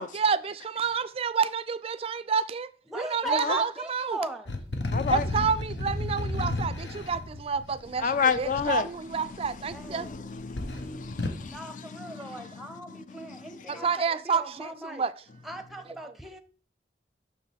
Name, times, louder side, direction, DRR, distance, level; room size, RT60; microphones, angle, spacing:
voice 1, 0.1-2.7 3.0-4.2 5.1-10.1 13.7-15.1, right 6 dB, 35° right, 0.4 m, -29 dB
voice 2, 2.9-4.5 9.7-10.2 11.5-15.0 15.4-16.4, equal, ahead, 0.7 m, -38 dB
sound 1, 4.5-8.6 9.4-10.2 10.5-11.4, left 2 dB, 75° left, 1.1 m, -32 dB
voice 3, 4.9-5.2 8.0-8.9 9.7-11.7 12.1-13.5, left 6 dB, 45° left, 0.5 m, -30 dB
6.8 x 6.3 x 3.4 m
head